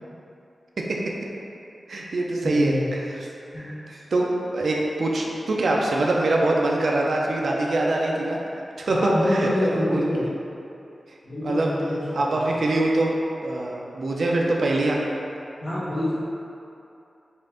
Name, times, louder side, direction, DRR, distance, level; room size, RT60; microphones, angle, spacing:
voice 1, 1.9-3.3 3.9-8.4 8.8-10.1 11.4-11.7 12.1-13.1 13.4-15.0, right 2 dB, 65° right, -2 dB, 0.5 m, -24 dB
voice 2, 2.4-2.9 3.5-3.7 8.9-10.2 11.2-12.2 15.6-16.1, left 1 dB, 45° left, -15 dB, 1.4 m, -26 dB
5.4 x 2.5 x 3.8 m, 2.7 s
wide cardioid pair, 145°, 0 cm